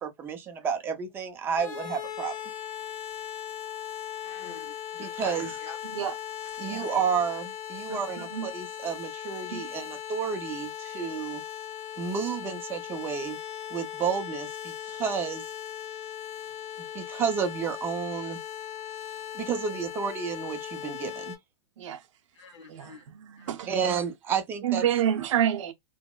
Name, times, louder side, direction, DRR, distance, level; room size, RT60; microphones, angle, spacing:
voice 1, 0.0-2.3 5.0-5.6 6.6-11.4 12.0-13.4 13.7-15.4 16.9-18.4 19.3-21.4 23.7-24.8, right 6 dB, 15° right, 0.5 m, -31 dB
sound 1, 1.6-21.4, left 10 dB, 35° left, 1.7 m, -38 dB
voice 2, 4.2-5.8 22.4-23.0 23.4-23.5, left 4 dB, 55° left, 1.3 m, -46 dB
voice 3, 5.8-6.2 6.6-6.9 7.9-8.5 9.5-9.6 21.8-22.1 22.7-24.0 24.6-25.7, right 10 dB, 65° right, 0.7 m, -29 dB
3.8 x 2.0 x 2.2 m
hypercardioid pair, 160°, 17 cm